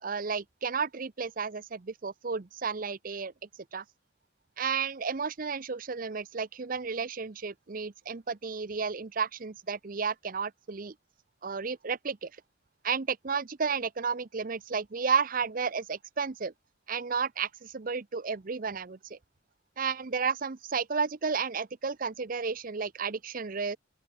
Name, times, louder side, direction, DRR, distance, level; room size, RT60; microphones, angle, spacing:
voice 1, 0.0-3.3 3.7-3.8 4.6-10.9 11.4-12.3 12.8-16.5 16.9-19.2 19.8-23.8, right 5 dB, 45° right, 0.7 m, -32 dB
open air
head